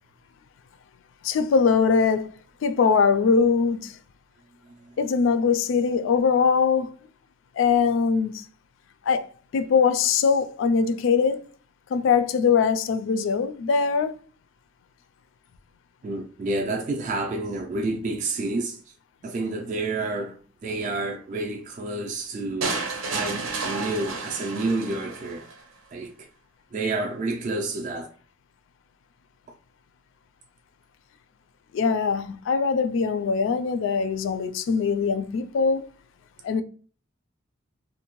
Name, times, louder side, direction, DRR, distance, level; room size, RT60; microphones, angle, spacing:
voice 1, 1.2-2.3 2.6-3.9 5.0-6.9 7.6-8.4 9.1-9.2 9.5-11.4 11.9-14.2 31.7-35.9 36.4-36.6, left 5 dB, 70° left, 0.3 m, -22 dB
voice 2, 16.0-18.8 19.2-20.3 20.6-22.8 23.1-25.5 25.9-26.3 26.7-28.1, right 2 dB, 40° right, 0.3 m, -29 dB
sound 1, 22.6-25.6, right 3 dB, 85° right, 0.6 m, -31 dB
2.6 x 2.1 x 2.9 m
head